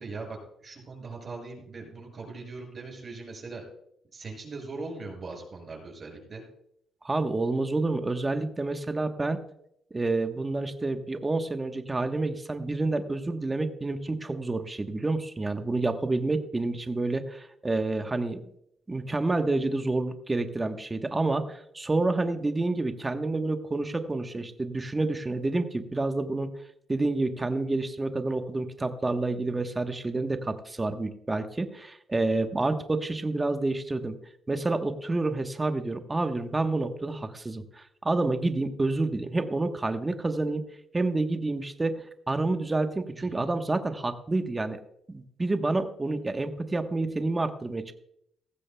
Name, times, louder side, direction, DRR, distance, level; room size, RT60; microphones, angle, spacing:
voice 1, 0.0-3.6 4.1-6.4 43.2-43.5, right 3 dB, 40° right, 0 dB, 6.5 m, -40 dB
voice 2, 7.0-9.4 9.9-18.4 18.9-26.5 26.9-34.2 34.5-40.7 40.9-44.8 45.1-47.9, right 2 dB, 20° right, 7 dB, 1.1 m, -28 dB
18.0 x 15.0 x 2.2 m, 0.73 s
cardioid pair, 90°, 0 cm